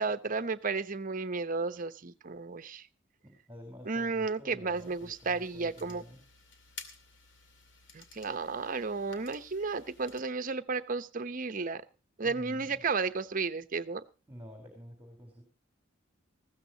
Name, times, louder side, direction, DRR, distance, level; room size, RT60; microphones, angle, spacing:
voice 1, 0.0-2.9 3.8-6.0 7.9-11.9 12.2-14.0, right 4 dB, 45° right, 11 dB, 0.9 m, -33 dB
voice 2, 3.2-6.2 12.2-12.8 14.3-15.4, equal, 10° right, 4 dB, 4.0 m, -49 dB
sound 1, 4.8-10.2, left 4 dB, 70° left, 2.4 m, -53 dB
20.0 x 15.0 x 2.9 m, 0.32 s
head